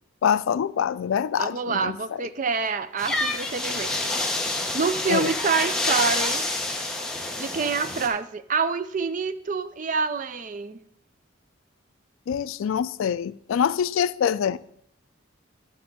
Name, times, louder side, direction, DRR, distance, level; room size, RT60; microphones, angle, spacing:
voice 1, 0.2-2.2 5.1-5.3 12.3-14.6, left 8 dB, 75° left, 0.3 m, -25 dB
voice 2, 1.4-3.9 4.7-6.5 7.4-10.8, right 5 dB, 40° right, 0.4 m, -27 dB
sound 1, 3.0-8.1, left 2 dB, 5° left, 0.7 m, -27 dB
10.0 x 3.6 x 6.7 m
head